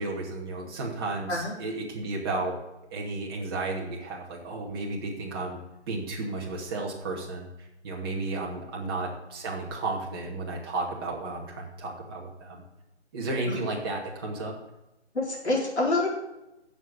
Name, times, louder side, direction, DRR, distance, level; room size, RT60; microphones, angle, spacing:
voice 1, 0.0-2.6 2.9-5.6 5.9-7.5 7.8-12.6 13.1-14.5, right 2 dB, 20° right, -3 dB, 2.4 m, -33 dB
voice 2, 15.1-16.1, left 2 dB, 70° left, -3 dB, 4.3 m, -27 dB
7.7 x 7.7 x 8.3 m, 0.94 s
figure-of-eight pair, 155°, 34 cm